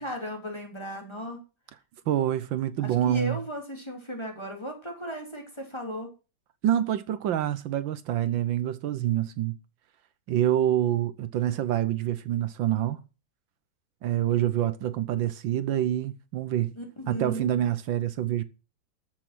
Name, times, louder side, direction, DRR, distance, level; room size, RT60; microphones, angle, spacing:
voice 1, 0.0-1.4 2.8-6.1 16.8-17.5, equal, 15° left, 3.5 m, -36 dB
voice 2, 2.1-3.4 6.6-9.5 10.3-13.0 14.0-16.8 17.1-18.4, right 11 dB, 75° right, 1.5 m, -26 dB
13.5 x 6.9 x 6.2 m
omnidirectional pair, 2.1 m